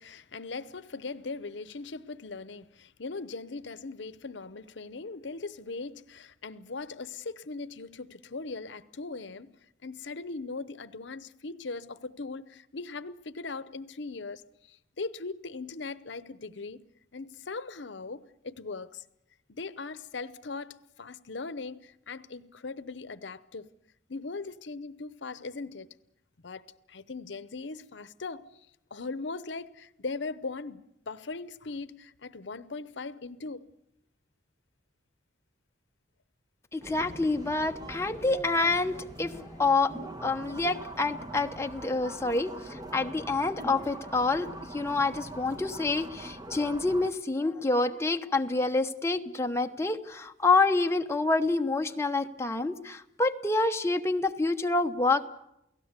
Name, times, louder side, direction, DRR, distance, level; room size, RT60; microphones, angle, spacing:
voice 1, 0.0-9.5 9.8-14.4 14.7-16.8 17.1-19.0 19.5-23.7 24.1-25.9 26.4-28.5 28.9-33.7, left 3 dB, 70° left, 0.8 m, -39 dB
voice 2, 36.7-39.9 40.2-55.3, left 3 dB, 15° left, 1.0 m, -27 dB
sound 1, 36.8-47.1, right 1 dB, 20° right, 1.2 m, -43 dB
29.0 x 17.5 x 8.2 m
head